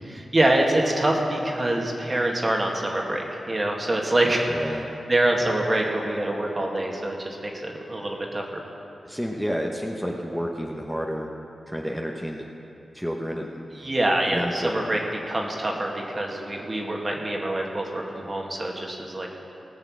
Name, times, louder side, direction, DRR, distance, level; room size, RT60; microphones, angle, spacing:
voice 1, 0.0-4.8 5.1-8.6 13.7-15.0 15.3-19.3, right 1 dB, 35° right, 0 dB, 2.0 m, -25 dB
voice 2, 4.5-4.8 5.3-5.5 9.0-11.3 11.7-12.4 12.9-13.6 14.3-14.7, equal, ahead, -1 dB, 1.2 m, -30 dB
18.0 x 6.5 x 6.3 m, 2.9 s
cardioid pair, 50°, 0 cm